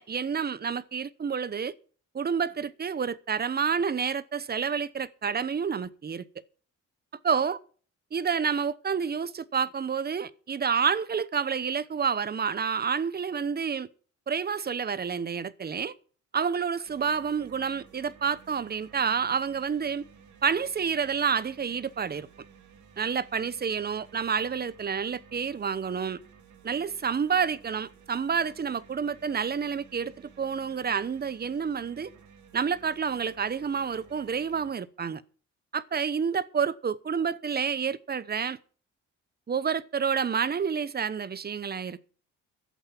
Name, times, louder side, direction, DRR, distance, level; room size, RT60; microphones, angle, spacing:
voice 1, 0.0-1.7 2.1-6.2 7.2-7.6 8.1-13.9 14.3-15.9 16.3-20.0 20.4-22.3 23.0-26.2 26.6-32.1 32.5-35.2 35.7-38.6 39.5-42.0, right 6 dB, 30° right, 0.8 m, -29 dB
sound 1, 16.9-34.7, right 6 dB, 70° right, 2.5 m, -55 dB
12.0 x 8.0 x 7.2 m
cardioid pair, 90°, 30 cm